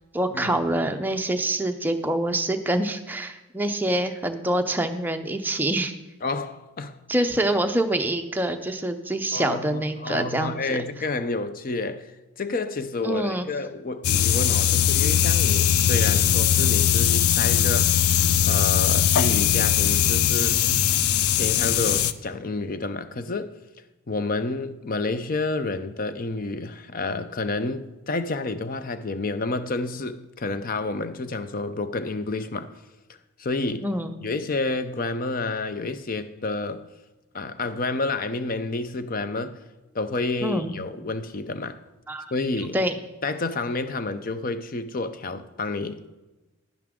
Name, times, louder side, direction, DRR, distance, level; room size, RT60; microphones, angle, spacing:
voice 1, 0.1-5.9 7.1-10.5 13.0-13.5 33.8-34.1 40.4-40.7 42.1-42.3 42.7-42.9, right 1 dB, 10° right, 0.5 m, -25 dB
voice 2, 6.2-7.0 9.3-12.1 12.4-18.1 18.4-20.7 21.4-23.5 24.1-32.7 33.4-33.9 34.2-36.9 37.3-39.6 39.9-41.8 42.3-42.8 43.2-46.0, left 3 dB, 40° left, 0.5 m, -29 dB
sound 1, 14.0-22.1, left 10 dB, 90° left, 0.4 m, -20 dB
11.0 x 10.5 x 3.7 m
head